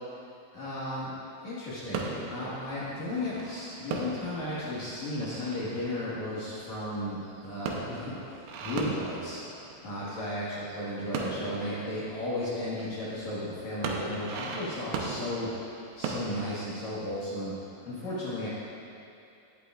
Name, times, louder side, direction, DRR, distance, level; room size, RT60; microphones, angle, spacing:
voice 1, 0.5-1.1 1.4-9.4 9.8-17.5 17.8-18.5, left 1 dB, 55° left, -9 dB, 2.2 m, -34 dB
sound 1, 1.9-10.3 10.6-13.2 13.6-16.6, right 4 dB, 75° right, 2.7 m, -38 dB
19.0 x 8.1 x 2.5 m, 2.7 s
omnidirectional pair, 5.6 m